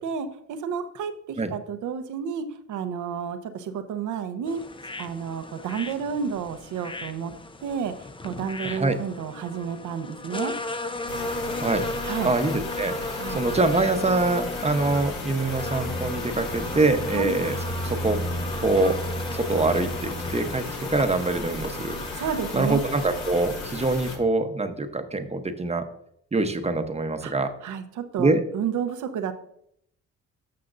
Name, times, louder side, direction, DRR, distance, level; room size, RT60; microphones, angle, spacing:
voice 1, 0.0-4.6 5.0-7.3 7.6-7.9 8.2-10.5 12.0-12.3 13.2-13.4 17.1-17.3 22.2-22.8 27.2-27.3 27.6-29.3, right 7 dB, 80° right, 9 dB, 1.0 m, -31 dB
sound 1, 4.5-23.3, left 2 dB, 15° left, 0.7 m, -36 dB
voice 2, 8.6-9.0 11.5-11.9 12.2-17.6 17.8-18.2 18.6-19.0 19.4-22.2 22.5-25.8 26.3-27.5 28.2-28.4, right 3 dB, 20° right, 7 dB, 1.0 m, -24 dB
sound 2, 11.1-24.2, left 3 dB, 65° left, 2.4 m, -36 dB
sound 3, 14.7-20.6, equal, 45° left, 1.4 m, -35 dB
12.0 x 6.8 x 2.6 m, 0.71 s
cardioid pair, 90°, 30 cm